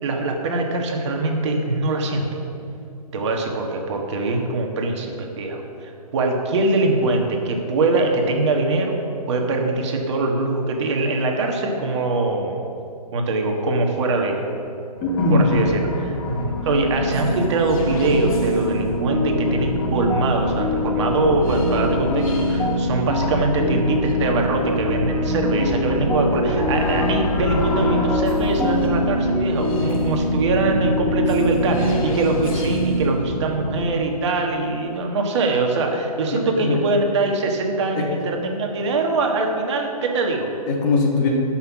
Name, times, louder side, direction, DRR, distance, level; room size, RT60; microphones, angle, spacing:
voice 1, 0.0-2.4 3.1-9.0 9.3-12.6 13.1-14.5 15.3-40.5, right 2 dB, 45° right, 2 dB, 1.6 m, -23 dB
sound 1, 15.0-33.8, equal, 55° left, 2.2 m, -25 dB
voice 2, 15.0-15.5 36.3-36.8 38.0-38.1 40.7-41.3, left 3 dB, 30° left, -1 dB, 1.9 m, -20 dB
sound 2, 18.6-32.1, left 5 dB, 10° left, 0.9 m, -28 dB
12.0 x 6.0 x 6.0 m, 2.6 s
hypercardioid pair, 140°, 20 cm